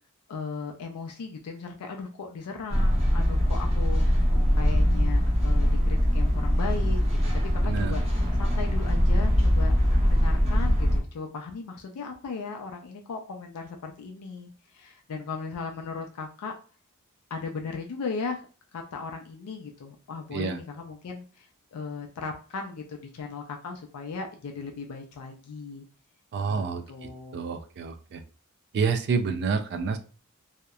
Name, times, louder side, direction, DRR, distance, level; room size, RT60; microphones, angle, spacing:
voice 1, 0.3-4.0 4.6-7.0 7.3-8.0 8.4-9.7 10.1-16.5 17.3-18.4 18.7-25.8 26.5-27.4, left 4 dB, 90° left, 3 dB, 0.4 m, -37 dB
sound 1, 2.7-11.0, equal, 30° right, 0.8 m, -22 dB
voice 2, 7.6-8.0 20.3-20.6 26.3-28.2 28.7-30.0, right 5 dB, 50° right, 9 dB, 0.3 m, -29 dB
2.8 x 2.0 x 2.3 m, 0.37 s
head